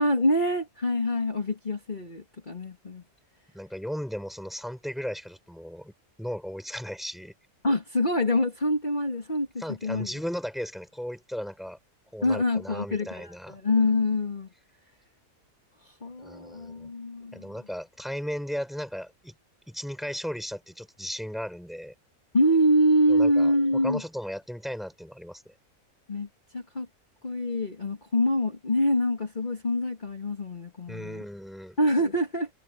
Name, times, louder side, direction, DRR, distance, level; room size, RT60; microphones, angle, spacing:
voice 1, 0.0-3.0 7.6-10.1 12.2-14.5 15.8-17.5 22.3-24.0 26.1-26.3 26.5-26.9 27.2-31.2 31.8-32.5, left 1 dB, 35° left, 2.5 m, -25 dB
voice 2, 3.5-5.9 6.2-7.3 9.6-11.8 12.1-13.6 16.2-16.9 17.3-19.3 19.7-21.9 23.1-23.5 23.8-25.6 30.9-31.8, equal, ahead, 6.0 m, -36 dB
omnidirectional pair, 1.4 m